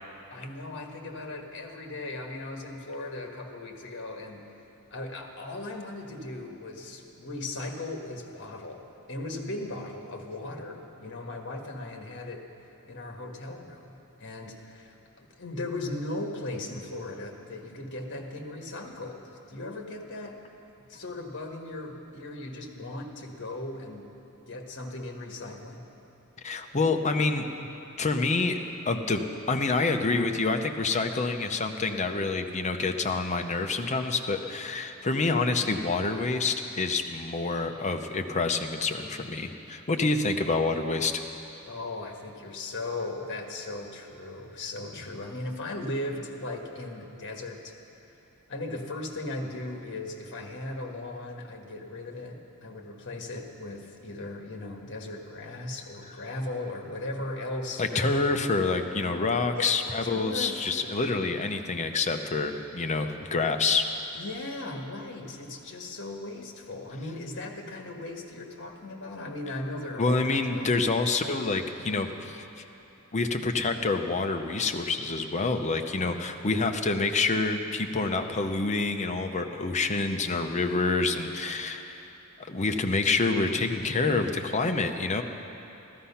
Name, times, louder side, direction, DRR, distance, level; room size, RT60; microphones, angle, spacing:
voice 1, 0.3-4.4 4.9-8.8 9.1-12.5 12.9-13.9 14.2-20.4 20.9-24.1 24.5-25.8 41.6-47.8 48.5-58.3 59.5-60.6 64.1-70.8, left 2 dB, 55° left, 2 dB, 1.5 m, -37 dB
voice 2, 26.4-27.5 28.0-41.1 57.8-63.9 70.0-72.4 73.1-82.1 82.5-85.2, left 3 dB, 30° left, 6 dB, 0.7 m, -27 dB
14.5 x 13.5 x 5.7 m, 2.9 s
head